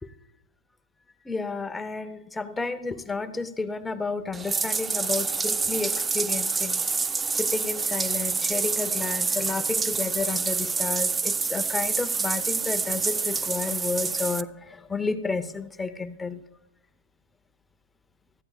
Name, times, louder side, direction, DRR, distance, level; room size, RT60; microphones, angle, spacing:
voice 1, 1.2-6.8 7.3-16.4, left 4 dB, 10° left, 10 dB, 0.8 m, -31 dB
Bathtub (filling or washing), 4.3-14.4, right 4 dB, 15° right, 0.4 m, -27 dB
18.0 x 13.5 x 2.4 m, 0.88 s
hypercardioid pair, 110°, 0 cm